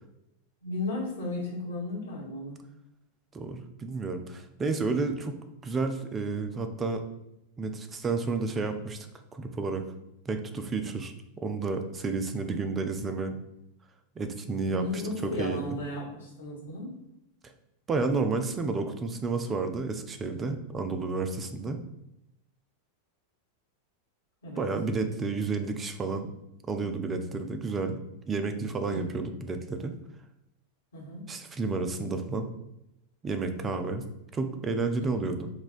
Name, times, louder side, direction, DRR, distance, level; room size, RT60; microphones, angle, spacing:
voice 1, 0.6-2.6 14.7-16.9 24.4-24.7 28.9-29.3 30.9-31.2 35.0-35.2, left 2 dB, 70° left, -4 dB, 1.2 m, -35 dB
voice 2, 3.3-7.0 7.6-9.1 9.3-9.8 10.3-11.1 11.4-13.4 14.2-15.6 17.4-17.5 17.9-21.8 24.6-26.3 26.7-28.0 28.3-30.0 31.3-32.5 33.2-34.0 34.3-35.5, right 3 dB, 20° right, 8 dB, 0.3 m, -31 dB
4.1 x 2.2 x 2.5 m, 0.86 s
figure-of-eight pair, 90°, 0 cm